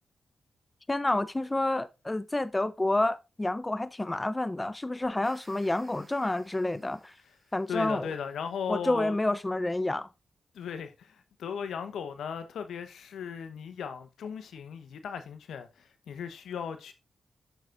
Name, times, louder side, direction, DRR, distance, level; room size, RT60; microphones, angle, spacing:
voice 1, 0.9-7.1 7.5-8.1 8.7-10.1, left 2 dB, 20° left, 0.6 m, -29 dB
sound 1, 5.0-8.2, right 2 dB, 35° right, 4.0 m, -60 dB
voice 2, 7.7-9.2 10.5-16.9, left 7 dB, 85° left, 1.0 m, -37 dB
9.1 x 6.5 x 2.5 m
supercardioid pair, 50°, 0 cm